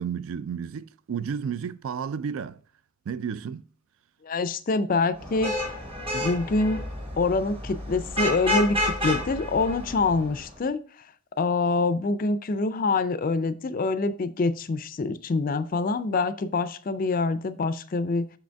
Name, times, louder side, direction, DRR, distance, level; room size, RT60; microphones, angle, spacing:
voice 1, 0.0-2.6 3.1-3.7, right 7 dB, 65° right, 0.3 m, -32 dB
voice 2, 4.2-5.6 6.1-6.8 7.2-11.1 11.4-18.3, left 3 dB, 40° left, 0.4 m, -25 dB
Vehicle horn car horn honking / Traffic noise roadway noise, 5.2-10.5, left 1 dB, 25° right, 1.1 m, -30 dB
6.2 x 5.2 x 3.4 m
head